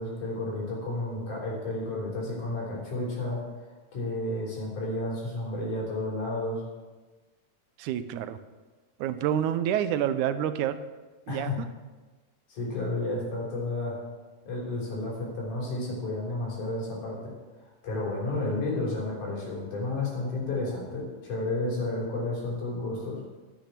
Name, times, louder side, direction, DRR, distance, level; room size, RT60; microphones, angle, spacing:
voice 1, 0.0-3.4 3.9-6.6 11.3-11.6 12.5-14.0 14.5-17.3 17.8-23.2, left 2 dB, 85° left, -4 dB, 5.1 m, -31 dB
voice 2, 7.8-8.4 9.0-10.8 11.3-11.5, right 10 dB, 80° right, 11 dB, 2.1 m, -28 dB
12.5 x 8.7 x 6.0 m, 1.3 s
omnidirectional pair, 3.5 m